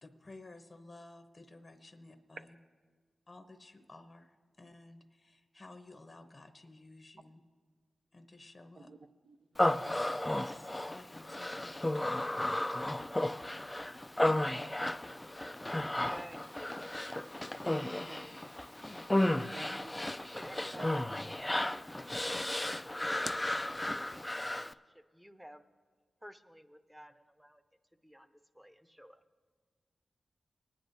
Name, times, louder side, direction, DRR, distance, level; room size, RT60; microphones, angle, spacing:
voice 1, 0.0-2.5 3.3-7.4 8.1-8.9 9.7-12.2 14.2-14.9 18.8-19.5, left 2 dB, 40° left, 7 dB, 0.8 m, -54 dB
Human voice, 9.6-24.7, left 1 dB, 15° left, 0.3 m, -34 dB
voice 2, 15.7-17.8 18.1-18.4 20.1-22.1 22.8-23.3 23.9-25.6 26.2-27.6 28.0-29.2, equal, 5° right, 9 dB, 0.7 m, -54 dB
voice 3, 19.4-19.9 20.7-20.9, right 4 dB, 55° right, 9 dB, 0.6 m, -50 dB
21.5 x 10.0 x 2.7 m, 1.5 s
cardioid pair, 65°, 0 cm